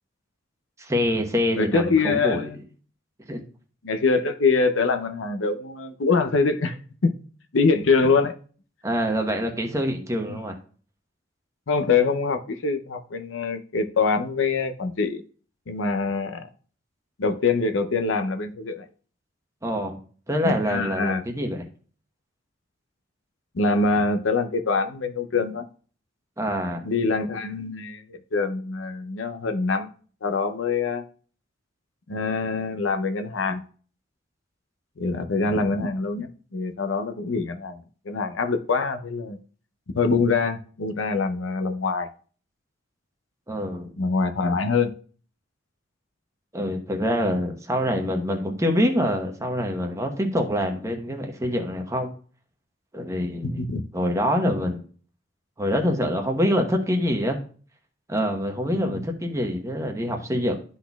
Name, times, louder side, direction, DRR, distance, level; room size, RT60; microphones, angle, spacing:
voice 1, 0.8-2.5 3.3-3.4 8.8-10.5 19.6-20.0 20.3-21.6 26.4-26.8 43.5-43.9 46.5-52.1 52.9-53.6 53.9-54.8 55.6-57.4 58.1-60.6, equal, 15° right, 1.0 m, -25 dB
voice 2, 1.6-2.6 3.8-6.8 7.0-7.1 7.5-8.3 10.3-10.4 11.7-15.2 15.7-16.5 17.2-18.9 20.4-21.2 23.5-25.6 26.8-29.9 30.2-31.0 32.1-33.6 35.0-37.8 38.1-39.4 40.0-42.1 44.0-44.9 53.4-53.9 58.7-59.0, left 4 dB, 85° left, 0.6 m, -24 dB
12.0 x 4.1 x 2.3 m
head